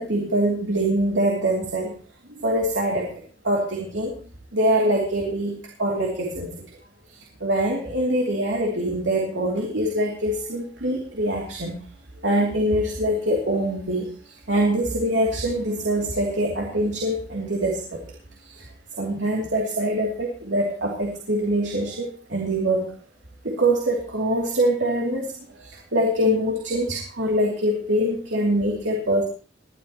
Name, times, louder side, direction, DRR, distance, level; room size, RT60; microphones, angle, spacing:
voice 1, 0.0-1.9 2.3-3.1 3.4-4.2 4.5-6.5 7.1-11.8 12.2-18.0 18.4-18.7 19.0-22.9 23.4-29.2, right 1 dB, 90° right, -1 dB, 2.8 m, -24 dB
21.5 x 12.0 x 3.0 m, 0.38 s
head